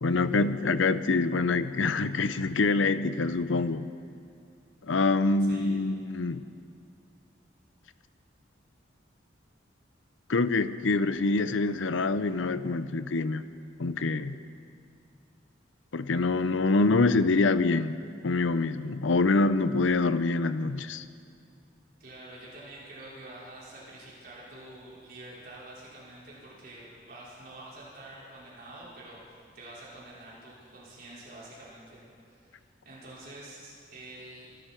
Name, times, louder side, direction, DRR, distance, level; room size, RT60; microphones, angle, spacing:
voice 1, 0.0-3.9 4.9-6.4 10.3-13.4 13.8-14.4 15.9-18.0 18.2-21.0, left 3 dB, 80° left, 13 dB, 0.6 m, -25 dB
voice 2, 5.4-5.9 22.0-32.6 32.8-34.5, right 1 dB, 50° right, -8 dB, 5.4 m, -47 dB
24.5 x 13.0 x 4.5 m, 2.3 s
head